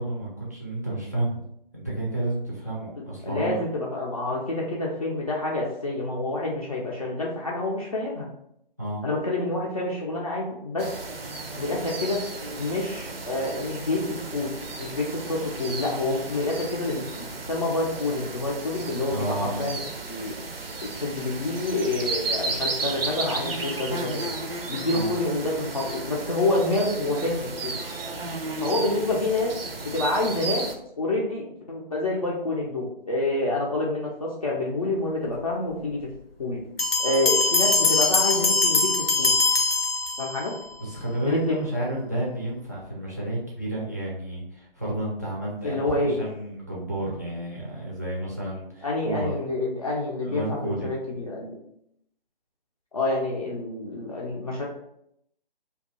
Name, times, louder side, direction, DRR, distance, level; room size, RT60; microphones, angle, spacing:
voice 1, 0.0-1.4 1.7-3.6 8.8-9.0 19.1-19.6 24.9-25.1 40.8-49.3 50.2-50.9, right 1 dB, 20° right, -5 dB, 0.5 m, -31 dB
voice 2, 3.2-8.3 9.0-10.9 11.6-12.2 12.6-14.0 14.3-14.5 14.8-19.8 20.1-20.3 20.8-24.3 24.7-27.8 28.6-29.5 29.8-30.6 31.0-36.0 36.4-36.6 37.0-39.3 40.2-40.5 41.2-41.6 45.6-46.1 48.8-51.6 52.9-54.6, left 2 dB, 40° left, -4 dB, 0.5 m, -27 dB
sound 1, 10.8-30.8, right 3 dB, 75° right, 0.5 m, -34 dB
sound 2, 36.8-40.6, left 3 dB, 85° left, 0.7 m, -22 dB
2.6 x 2.3 x 4.0 m, 0.75 s
figure-of-eight pair, 145°, 29 cm